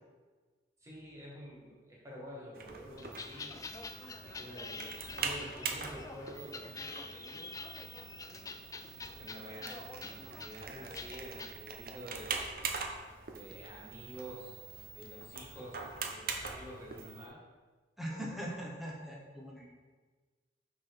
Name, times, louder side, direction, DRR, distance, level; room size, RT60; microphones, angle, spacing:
voice 1, 0.8-7.5 9.2-12.5 13.3-14.6 14.9-15.8 16.1-17.4, equal, 15° right, -6 dB, 1.6 m, -49 dB
sound 1, 2.5-17.3, right 5 dB, 55° right, 0.8 m, -43 dB
sound 2, 3.0-11.5, left 4 dB, 20° left, 0.4 m, -47 dB
voice 2, 18.0-19.7, equal, ahead, -3 dB, 1.1 m, -41 dB
6.2 x 4.0 x 5.9 m, 1.4 s
head